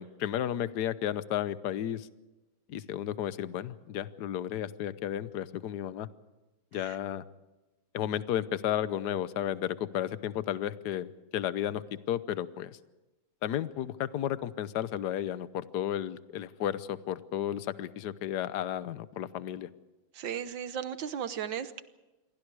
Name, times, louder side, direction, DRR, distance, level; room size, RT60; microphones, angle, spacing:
voice 1, 0.0-2.1 2.7-6.1 6.7-7.2 7.9-12.8 13.4-19.7, left 11 dB, 60° left, 14 dB, 1.3 m, -33 dB
voice 2, 20.1-21.8, right 8 dB, 65° right, 12 dB, 1.7 m, -36 dB
28.0 x 23.0 x 4.8 m, 1.1 s
omnidirectional pair, 2.3 m